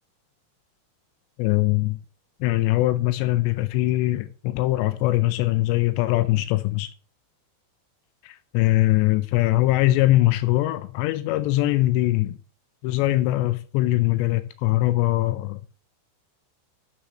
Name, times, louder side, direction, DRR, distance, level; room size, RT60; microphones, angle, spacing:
voice 1, 1.4-2.0 2.4-6.9 8.5-12.3 12.8-15.6, left 17 dB, 90° left, 2.4 m, -22 dB
7.1 x 6.6 x 6.2 m
omnidirectional pair, 5.7 m